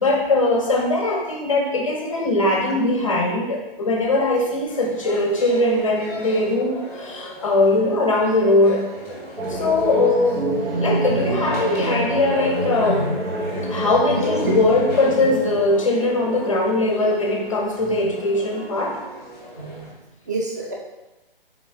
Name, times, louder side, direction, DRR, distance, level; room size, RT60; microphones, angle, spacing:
voice 1, 0.0-8.9 9.5-10.5 10.8-13.0 13.7-19.0, left 2 dB, 35° left, 1 dB, 0.5 m, -20 dB
sound 1, 4.7-19.9, equal, 10° left, 0.8 m, -37 dB
sound 2, 9.4-17.3, right 1 dB, 85° right, 0.8 m, -26 dB
voice 2, 14.1-14.5 19.6-20.0 20.3-20.7, right 2 dB, 20° right, -2 dB, 0.4 m, -28 dB
3.5 x 3.4 x 3.3 m, 1.0 s
figure-of-eight pair, 140°, 29 cm